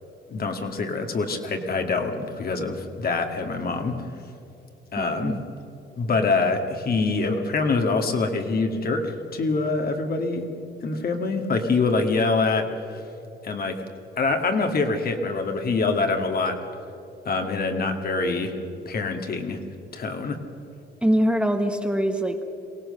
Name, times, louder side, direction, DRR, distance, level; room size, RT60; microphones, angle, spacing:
voice 1, 0.3-4.0 4.9-5.4 6.0-10.5 10.8-13.0 13.4-13.8 14.2-16.6 17.3-18.5 18.9-19.6 19.9-20.4, left 3 dB, 50° left, 4 dB, 2.0 m, -25 dB
voice 2, 5.0-5.4 21.0-22.4, equal, 5° right, 5 dB, 1.3 m, -23 dB
23.0 x 17.0 x 6.7 m, 2.7 s
cardioid pair, 90°, 20 cm